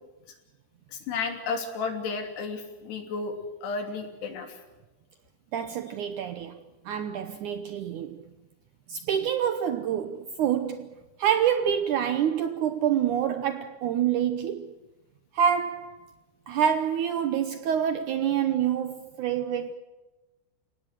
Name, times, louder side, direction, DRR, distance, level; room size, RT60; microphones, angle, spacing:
voice 1, 0.9-4.6, left 4 dB, 85° left, 5.1 m, -33 dB
voice 2, 5.5-6.6 6.9-8.2 8.9-10.9 11.2-14.7 15.3-16.1 16.5-19.8, right 9 dB, 75° right, 1.9 m, -27 dB
30.0 x 18.0 x 6.5 m
omnidirectional pair, 4.6 m